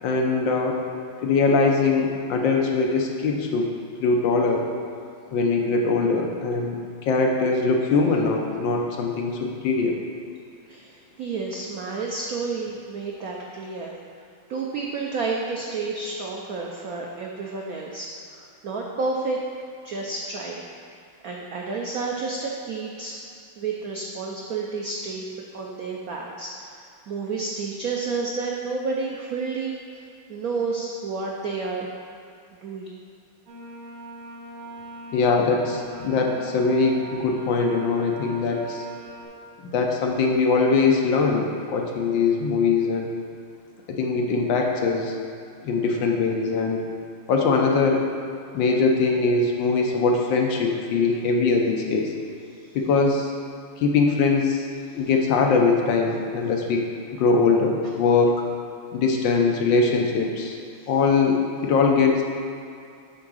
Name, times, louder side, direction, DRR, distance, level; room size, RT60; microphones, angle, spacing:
voice 1, 0.0-0.8 1.2-3.7 4.0-4.6 5.3-9.9 35.1-38.8 39.6-43.1 43.9-45.1 45.6-46.8 47.3-48.0 48.5-52.1 52.7-53.3 53.8-54.7 54.9-56.8 57.1-58.3 58.9-60.6 60.9-62.2, left 4 dB, 70° left, 1 dB, 1.4 m, -22 dB
voice 2, 10.7-14.2 14.5-19.4 19.8-21.0 21.2-23.2 23.6-25.2 25.5-30.0 30.3-31.9 32.6-33.0, right 4 dB, 80° right, -1 dB, 0.8 m, -30 dB
sound 1, 33.5-39.3, right 1 dB, 45° right, 2.4 m, -41 dB
8.5 x 3.6 x 6.2 m, 2.5 s
omnidirectional pair, 2.3 m